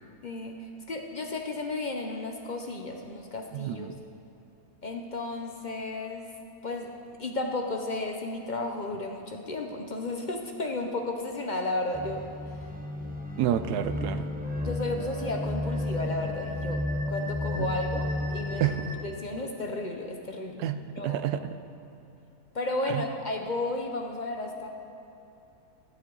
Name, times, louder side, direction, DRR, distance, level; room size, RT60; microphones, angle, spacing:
voice 1, 0.2-3.9 4.8-6.3 6.6-12.2 14.6-16.8 17.1-18.7 19.0-20.7 21.0-21.2 22.5-24.7, left 2 dB, 45° left, 3 dB, 0.6 m, -33 dB
voice 2, 3.5-3.9 13.4-14.2 17.6-17.7 18.6-18.9 20.6-21.5 22.9-23.0, right 10 dB, 80° right, 10 dB, 1.1 m, -29 dB
sound 1, 11.9-19.0, left 2 dB, 10° right, 0.5 m, -32 dB
13.5 x 11.5 x 3.9 m, 2.9 s
omnidirectional pair, 1.7 m